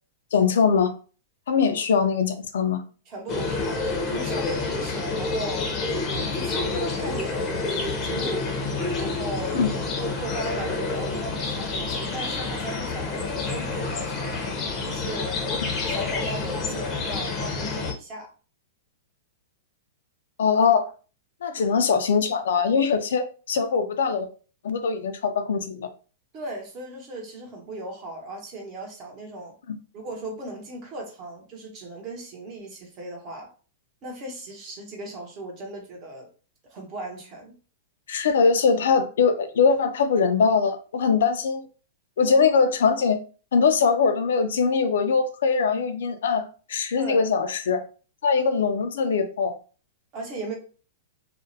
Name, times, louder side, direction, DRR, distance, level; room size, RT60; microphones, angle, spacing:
voice 1, 0.3-0.9 1.5-2.8 9.5-9.7 20.4-20.9 21.4-24.3 24.6-25.9 38.1-41.6 42.2-43.2 43.5-47.8 48.2-49.5, left 5 dB, 80° left, 0.4 m, -22 dB
voice 2, 3.1-5.7 6.0-8.5 9.0-9.6 10.0-14.4 14.8-15.4 15.9-18.3 21.6-21.8 26.3-29.5 29.9-33.5 34.0-36.3 36.7-37.6 46.9-47.3 50.1-50.6, right 1 dB, 40° right, 0.9 m, -37 dB
sound 1, 3.3-17.9, left 3 dB, 30° left, 0.6 m, -28 dB
2.4 x 2.0 x 2.6 m
hypercardioid pair, 135°, 0 cm